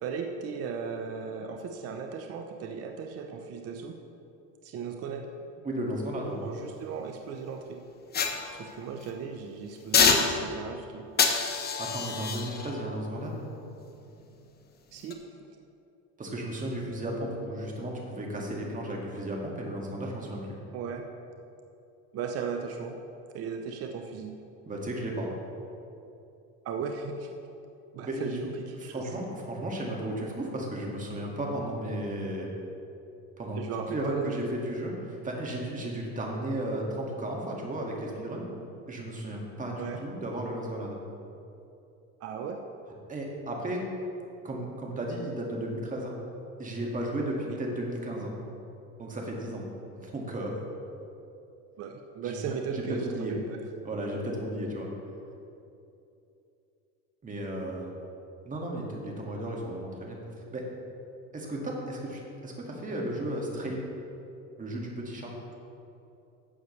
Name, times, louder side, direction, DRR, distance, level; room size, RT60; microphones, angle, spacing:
voice 1, 0.0-4.0 4.6-5.3 5.6-5.7 6.4-7.8 8.5-11.1 14.9-15.2 20.7-21.1 22.1-23.0 23.3-24.3 26.6-27.3 27.9-29.1 33.5-34.3 39.8-40.0 42.2-42.6 51.8-53.0 53.3-53.6, right 6 dB, 45° right, 4 dB, 0.7 m, -36 dB
voice 2, 5.6-6.4 11.8-13.5 16.2-20.5 24.7-25.3 28.1-32.5 33.4-33.6 33.9-38.5 38.9-41.0 43.1-43.8 44.4-46.1 46.6-48.3 49.0-49.7 50.0-50.5 52.2-52.4 52.7-53.3 53.8-54.9 57.2-57.9 58.4-60.2 60.5-60.7 61.3-63.9 64.6-65.3, right 1 dB, 25° right, -1 dB, 2.0 m, -34 dB
sound 1, 8.1-9.1 9.9-10.7 11.2-14.4 14.9-15.1, left 5 dB, 30° left, 0.9 m, -28 dB
12.0 x 8.0 x 3.2 m, 2.7 s
supercardioid pair, 110°, 33 cm